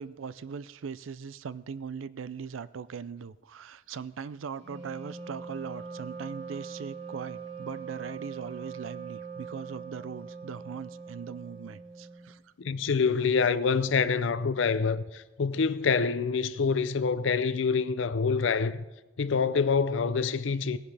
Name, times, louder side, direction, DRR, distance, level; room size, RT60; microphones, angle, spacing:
voice 1, 0.0-12.5, right 6 dB, 85° right, 0.4 m, -40 dB
Wind instrument woodwind instrument, 4.6-12.4, right 5 dB, 60° right, 3.1 m, -42 dB
voice 2, 12.6-18.8 19.2-20.8, left 5 dB, 70° left, 0.5 m, -26 dB
17.5 x 10.5 x 3.4 m
head